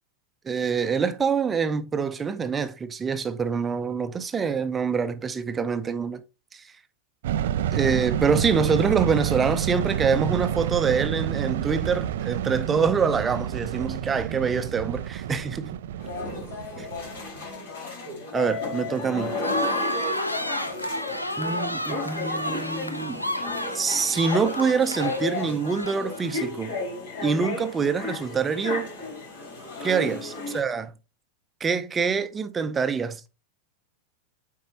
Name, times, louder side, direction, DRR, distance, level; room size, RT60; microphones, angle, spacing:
voice 1, 0.4-6.2 6.5-6.6 7.7-15.8 18.3-19.4 21.4-23.3 23.7-26.7 27.2-28.9 29.8-30.9 31.6-33.3, right 5 dB, 20° right, 0.7 m, -25 dB
sound 1, 7.2-17.4, right 11 dB, 55° right, 0.4 m, -29 dB
sound 2, 16.0-30.6, left 3 dB, 60° left, 4.2 m, -33 dB
sound 3, 19.4-26.3, equal, 85° left, 0.7 m, -31 dB
8.1 x 4.7 x 3.0 m
figure-of-eight pair, 90°, 0 cm